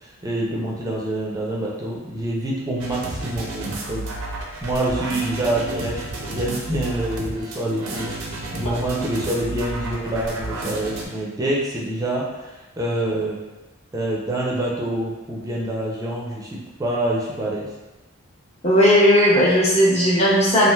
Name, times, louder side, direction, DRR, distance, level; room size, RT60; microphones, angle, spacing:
voice 1, 0.0-4.1 4.6-13.4 13.9-17.7, right 1 dB, 15° right, -4 dB, 0.4 m, -26 dB
sound 1, 2.8-11.0, right 2 dB, 85° right, 0.5 m, -31 dB
voice 2, 18.6-20.7, equal, 30° left, -6 dB, 0.6 m, -16 dB
3.2 x 2.4 x 2.3 m, 1.1 s
head